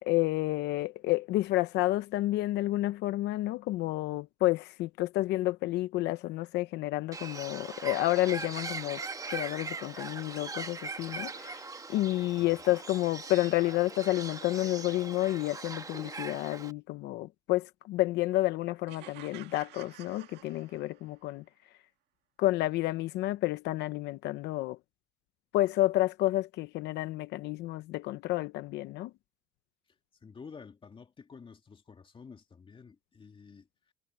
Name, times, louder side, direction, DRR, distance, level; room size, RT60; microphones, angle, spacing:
voice 1, 0.0-9.0 9.3-11.6 11.9-21.4 22.4-24.8 25.5-29.1, left 17 dB, 85° left, 0.8 m, -30 dB
Bird, 7.1-16.7, right 4 dB, 20° right, 1.4 m, -41 dB
sound 1, 18.9-21.2, right 15 dB, 85° right, 1.8 m, -51 dB
voice 2, 30.2-33.9, left 5 dB, 30° left, 2.5 m, -50 dB
cardioid pair, 110°, 17 cm